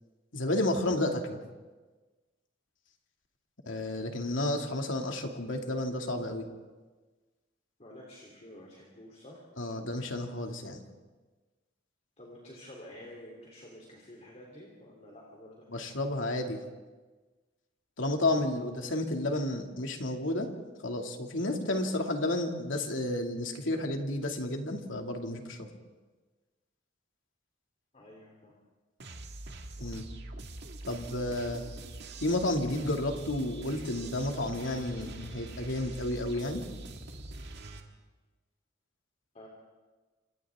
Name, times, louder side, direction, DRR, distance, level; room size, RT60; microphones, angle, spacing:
voice 1, 0.3-1.4 3.7-6.5 9.6-10.8 15.7-16.6 18.0-20.5 20.8-25.7 29.8-30.0 30.9-31.6 32.2-36.6, left 1 dB, 90° left, 2 dB, 2.5 m, -31 dB
voice 2, 7.8-9.4 12.2-15.7 27.9-28.6 29.8-29.9 39.3-39.5, left 1 dB, 35° left, -3 dB, 3.5 m, -50 dB
sound 1, 29.0-37.8, right 2 dB, 60° right, 2.0 m, -44 dB
29.0 x 26.5 x 3.7 m, 1.3 s
head